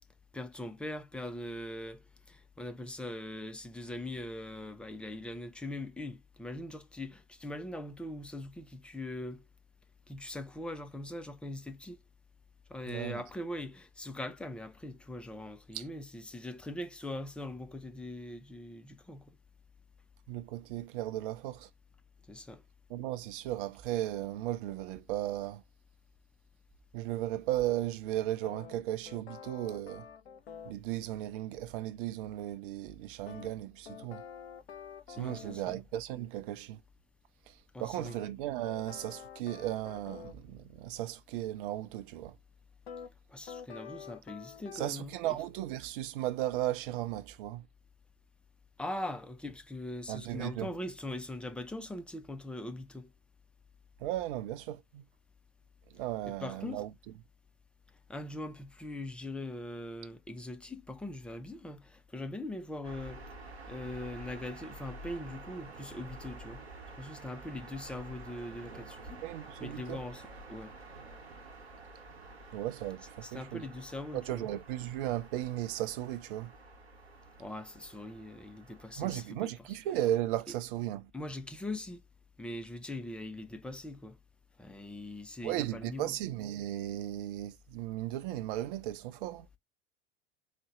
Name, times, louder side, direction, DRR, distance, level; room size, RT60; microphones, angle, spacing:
voice 1, 0.3-2.0 2.3-9.4 10.1-12.0 12.7-19.4 22.3-22.6 35.2-35.8 37.7-38.1 43.3-45.4 48.8-53.1 56.3-56.8 58.1-66.6 67.0-69.2 69.6-70.7 73.2-74.5 77.4-79.5 81.1-82.0 82.4-84.2 84.6-86.2, left 1 dB, 5° left, 0.5 m, -41 dB
voice 2, 12.9-13.2 15.7-15.8 20.3-21.7 22.9-25.6 26.9-30.1 30.6-34.2 35.1-36.8 37.5-42.4 44.7-47.7 50.1-50.7 54.0-55.0 55.9-56.9 69.2-70.0 72.5-73.6 74.1-76.5 79.0-81.1 85.4-89.5, right 14 dB, 55° right, 0.6 m, -36 dB
sound 1, 28.4-30.8 33.3-35.6 38.1-40.4 42.9-43.1 43.5-44.9, left 7 dB, 75° left, 0.7 m, -48 dB
sound 2, 62.8-79.3, right 2 dB, 85° right, 1.0 m, -49 dB
4.1 x 2.1 x 2.9 m
figure-of-eight pair, 80°, 31 cm